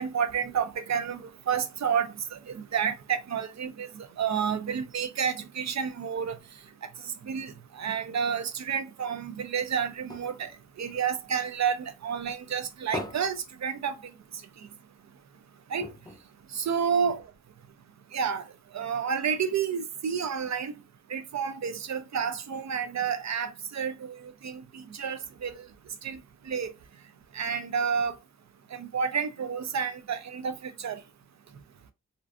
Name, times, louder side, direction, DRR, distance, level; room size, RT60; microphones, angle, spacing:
voice 1, 0.0-6.4 6.8-10.5 10.8-14.0 15.7-15.9 16.5-17.2 18.1-18.5 18.7-20.7 21.1-25.7 26.0-26.7 27.3-28.2 28.7-31.0, right 7 dB, 60° right, 0.4 m, -30 dB
sound 1, 9.2-11.8 12.2-14.5 14.8-14.9 15.2-15.3 15.8-17.3 17.9-18.0, left 2 dB, 15° left, 0.4 m, -43 dB
2.5 x 2.3 x 2.3 m
wide cardioid pair, 95°, 31 cm